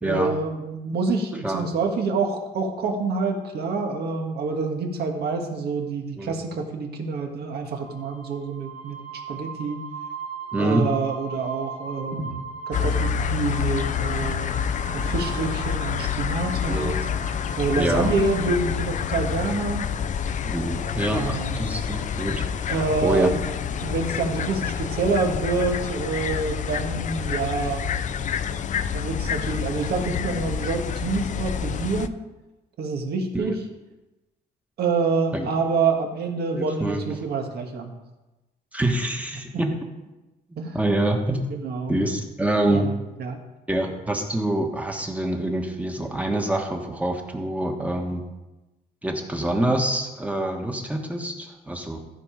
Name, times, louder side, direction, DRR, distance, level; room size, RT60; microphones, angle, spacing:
voice 1, 0.0-9.0 9.3-9.8 10.6-14.5 14.9-17.0 17.6-19.9 21.1-21.6 22.7-23.4 23.8-27.9 28.9-32.1 32.8-33.5 34.8-37.9 40.6-40.8 41.5-41.9 42.7-43.4, right 4 dB, 70° right, 3 dB, 1.7 m, -27 dB
sound 1, 7.7-18.6, right 5 dB, 55° right, 3.0 m, -39 dB
voice 2, 10.5-10.9 12.2-12.4 16.7-17.0 17.7-18.1 20.4-23.3 33.3-33.5 35.3-35.5 36.5-37.0 38.7-39.7 40.7-41.4 41.9-42.9 43.7-48.2 49.0-52.0, right 1 dB, 10° right, 3 dB, 1.4 m, -26 dB
sound 2, 12.7-32.1, left 7 dB, 45° left, 0.5 m, -28 dB
14.5 x 5.2 x 5.1 m, 1.1 s
cardioid pair, 120°, 17 cm